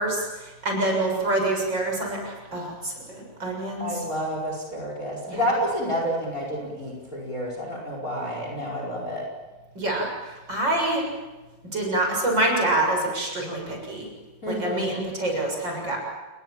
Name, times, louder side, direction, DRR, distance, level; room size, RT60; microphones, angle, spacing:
voice 1, 0.0-3.9 5.3-5.4 9.8-11.0 11.7-14.1 14.5-16.0, right 1 dB, 30° right, 1 dB, 7.6 m, -26 dB
voice 2, 0.9-1.3 3.8-9.2 14.4-14.8, equal, 20° left, 0 dB, 5.3 m, -29 dB
29.5 x 22.0 x 7.4 m, 1.2 s
omnidirectional pair, 4.1 m